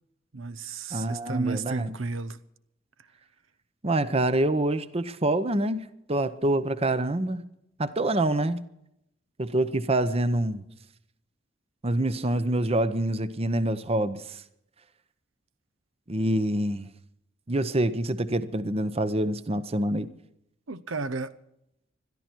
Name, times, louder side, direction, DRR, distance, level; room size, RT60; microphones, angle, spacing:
voice 1, 0.3-2.4 20.7-21.3, right 3 dB, 90° right, 0.8 m, -32 dB
voice 2, 0.9-1.9 3.8-7.5 7.8-8.6 9.4-10.6 11.8-14.4 16.1-16.9 17.5-20.1, right 1 dB, 30° right, 0.8 m, -26 dB
21.5 x 13.5 x 4.6 m
head